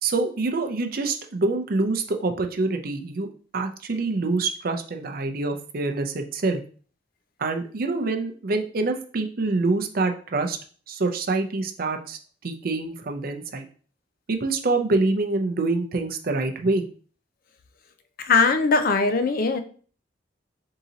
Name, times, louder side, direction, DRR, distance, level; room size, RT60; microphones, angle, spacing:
voice 1, 0.0-3.3 3.5-6.6 7.4-10.6 10.9-12.2 12.4-13.7 14.3-16.8, right 3 dB, 55° right, 5 dB, 0.6 m, -26 dB
voice 2, 18.2-19.6, left 4 dB, 50° left, 9 dB, 0.4 m, -20 dB
3.8 x 2.8 x 3.9 m, 0.42 s
head